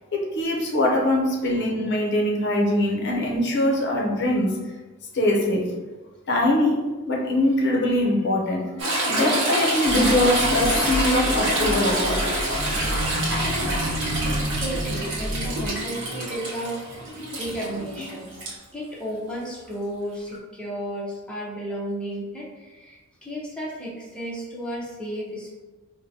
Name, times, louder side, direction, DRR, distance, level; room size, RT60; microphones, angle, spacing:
voice 1, 0.1-4.6 5.1-5.7 6.3-6.8 7.1-8.6 9.0-12.2, left 1 dB, 55° left, -1 dB, 0.6 m, -22 dB
Toilet flush / Trickle dribble, 8.8-18.5 20.3-20.4, right 1 dB, 55° right, 0.9 m, -26 dB
sound 1, 9.8-15.7, equal, 15° right, 1.1 m, -30 dB
voice 2, 14.6-16.8 17.4-18.4 18.7-25.6, right 1 dB, 5° left, -5 dB, 0.6 m, -33 dB
4.4 x 2.1 x 2.7 m, 1.2 s
head